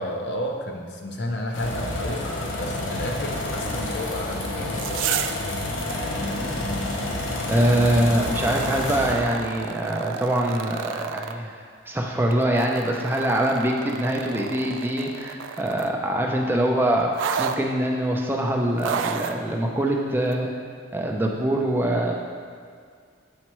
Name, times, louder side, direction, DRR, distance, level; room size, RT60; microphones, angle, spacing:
voice 1, 0.0-5.6, left 1 dB, 60° left, 2 dB, 0.6 m, -32 dB
sound 1, 1.5-9.2, left 1 dB, 90° left, 0.8 m, -29 dB
sound 2, 4.6-5.4 5.8-5.9 8.3-11.4 12.3-16.0 17.1-17.6 18.8-19.4 20.3-20.4, right 7 dB, 85° right, 0.3 m, -31 dB
voice 2, 7.5-20.5 20.9-22.1, right 1 dB, 10° right, 0 dB, 0.5 m, -24 dB
7.3 x 4.3 x 3.0 m, 2.1 s
head